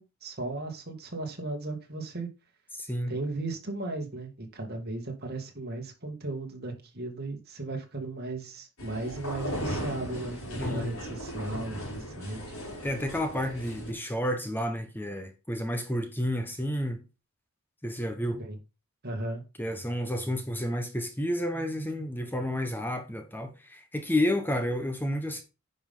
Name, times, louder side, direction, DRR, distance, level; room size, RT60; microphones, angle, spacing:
voice 1, 0.0-2.3 3.1-12.6 18.4-18.6 19.0-19.4, right 2 dB, 50° right, 2.4 m, -36 dB
voice 2, 2.8-3.1 10.6-10.9 12.8-17.0 17.8-18.4 19.6-25.4, left 1 dB, 10° left, 1.0 m, -31 dB
sound 1, 8.8-13.9, equal, 90° left, 4.9 m, -37 dB
9.9 x 5.6 x 3.8 m
head